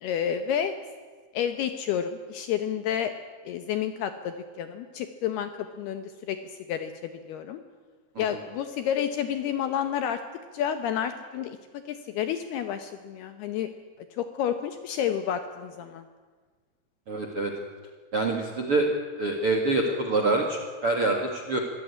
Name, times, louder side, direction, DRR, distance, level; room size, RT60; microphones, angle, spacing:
voice 1, 0.0-0.8 1.3-3.1 3.5-5.5 5.8-6.4 6.7-6.9 7.3-7.6 8.2-10.2 10.5-11.6 11.9-13.7 14.2-16.0, left 9 dB, 75° left, 9 dB, 2.5 m, -30 dB
voice 2, 17.1-17.5 18.1-18.9 19.2-21.6, right 2 dB, 55° right, 3 dB, 1.5 m, -26 dB
24.5 x 16.5 x 9.8 m, 1.5 s
omnidirectional pair, 5.6 m